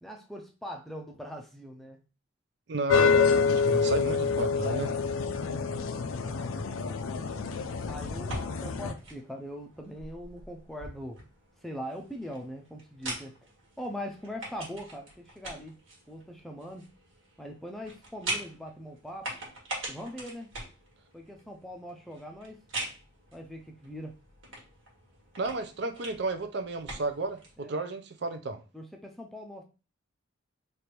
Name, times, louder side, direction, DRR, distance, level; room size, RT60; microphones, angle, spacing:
voice 1, 0.0-2.1 6.2-6.7 7.8-11.2 11.6-13.4 13.8-15.8 16.1-16.8 17.4-19.3 19.9-20.5 21.1-22.6 23.3-24.2 27.6-27.7 28.7-29.6, equal, ahead, 0.5 m, -41 dB
voice 2, 2.7-4.9 25.4-28.6, right 3 dB, 55° right, 0.5 m, -33 dB
sound 1, 2.9-8.9, left 5 dB, 85° left, 0.4 m, -27 dB
sound 2, 8.0-27.6, right 2 dB, 75° right, 1.6 m, -43 dB
3.3 x 2.5 x 4.4 m
head